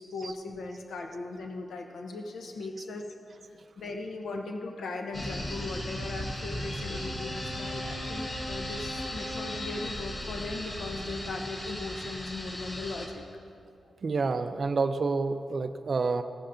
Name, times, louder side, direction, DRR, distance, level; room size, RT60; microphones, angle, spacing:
voice 1, 0.0-3.1 3.5-13.2, left 3 dB, 80° left, 3 dB, 0.7 m, -38 dB
sound 1, 5.1-13.1, left 1 dB, 30° left, 1.1 m, -37 dB
sound 2, 5.2-11.5, left 1 dB, 60° left, 2.1 m, -41 dB
voice 2, 14.0-16.2, right 4 dB, 40° right, 9 dB, 0.4 m, -29 dB
15.5 x 9.8 x 2.6 m, 2.5 s
wide cardioid pair, 170°, 0 cm